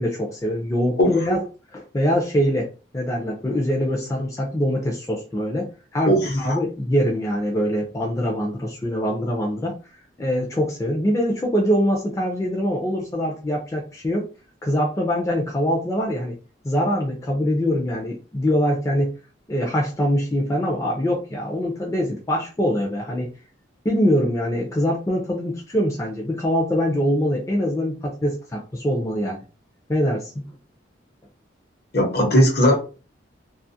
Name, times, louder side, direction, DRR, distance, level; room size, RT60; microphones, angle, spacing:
voice 1, 0.0-1.4 1.7-2.7 2.9-9.8 10.2-14.3 14.6-16.4 16.6-19.1 19.5-23.3 23.8-29.4 29.9-30.6, equal, 15° left, -1 dB, 0.4 m, -23 dB
voice 2, 1.0-1.4 6.1-6.6 31.9-32.8, equal, 55° left, 1 dB, 0.9 m, -19 dB
2.4 x 2.4 x 2.7 m, 0.34 s
head